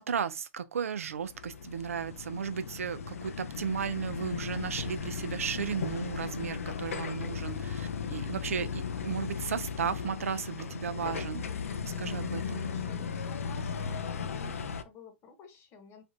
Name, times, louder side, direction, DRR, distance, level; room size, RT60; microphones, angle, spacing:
voice 1, 0.0-11.5 11.8-12.7, right 7 dB, 85° right, 0.4 m, -35 dB
sound 1, 1.1-14.8, left 6 dB, 85° left, 0.4 m, -36 dB
voice 2, 12.6-16.0, left 4 dB, 35° left, 1.0 m, -52 dB
3.3 x 2.4 x 2.5 m
hypercardioid pair, 110°, 7 cm